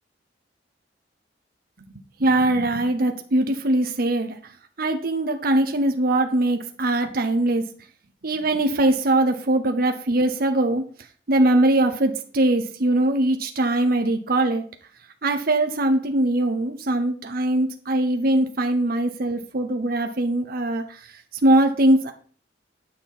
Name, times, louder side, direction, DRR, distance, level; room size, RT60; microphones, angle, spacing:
voice 1, 2.2-4.5 4.8-7.7 8.2-10.9 11.3-14.6 15.2-22.1, right 1 dB, 55° right, 5 dB, 1.0 m, -21 dB
9.7 x 6.3 x 5.6 m, 0.43 s
head